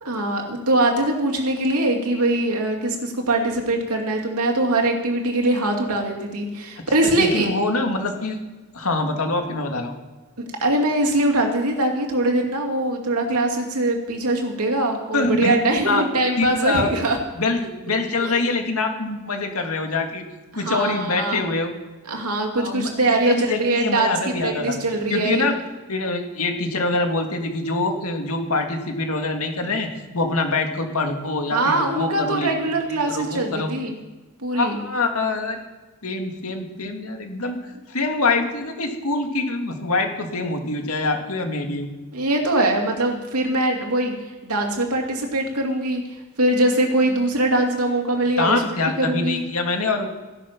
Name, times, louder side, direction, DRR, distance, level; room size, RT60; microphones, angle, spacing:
voice 1, 0.0-7.5 10.6-17.2 18.2-18.3 20.5-21.4 22.1-24.1 24.4-25.4 31.5-34.0 34.4-34.8 42.1-44.1 44.4-46.0 46.4-48.6 49.0-49.4, right 2 dB, 85° right, 2 dB, 2.7 m, -22 dB
voice 2, 7.2-8.4 8.7-9.9 15.1-15.6 15.8-16.0 16.4-17.1 17.4-20.2 20.5-21.7 22.6-22.9 23.3-24.8 25.1-25.5 25.9-29.9 30.1-32.5 33.1-33.7 34.5-35.6 36.0-37.6 37.9-41.9 48.4-50.1, left 3 dB, 80° left, 4 dB, 2.1 m, -24 dB
15.5 x 11.0 x 6.0 m, 1.2 s
head